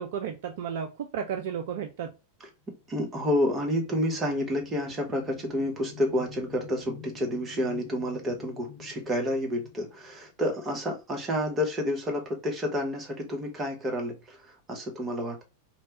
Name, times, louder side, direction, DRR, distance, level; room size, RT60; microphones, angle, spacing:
voice 1, 0.0-2.1, right 7 dB, 55° right, 0.3 m, -33 dB
sound 1, 2.8-10.5, left 9 dB, 50° left, 0.6 m, -48 dB
voice 2, 2.9-15.4, equal, 20° right, 0.8 m, -29 dB
2.9 x 2.2 x 2.8 m
figure-of-eight pair, 90°, 0 cm